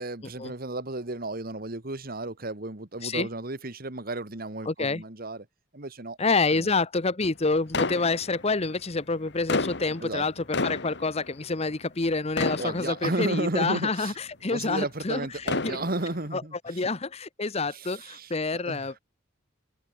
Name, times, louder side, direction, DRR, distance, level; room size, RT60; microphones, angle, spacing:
voice 1, 0.0-5.4 5.7-6.2 6.5-6.7 10.0-10.2 12.6-14.1 14.5-16.9 17.7-18.8, right 2 dB, 50° right, 2.0 m, -33 dB
voice 2, 4.6-5.0 6.2-15.5 16.3-19.0, left 3 dB, 30° left, 0.9 m, -28 dB
sound 1, 7.7-8.7 9.3-12.1 12.4-13.4 14.1-14.2 15.2-16.3, left 3 dB, 60° left, 2.0 m, -31 dB
open air
head